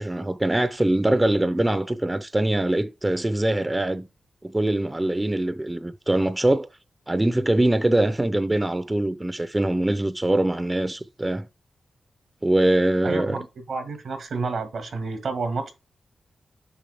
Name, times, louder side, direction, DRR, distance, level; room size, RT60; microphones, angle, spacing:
voice 1, 0.0-4.1 4.4-6.7 7.1-11.5 12.4-13.4, right 1 dB, 20° right, 0.5 m, -23 dB
voice 2, 13.0-15.7, right 4 dB, 80° right, 1.6 m, -30 dB
7.1 x 4.7 x 3.5 m
cardioid pair, 65°, 0 cm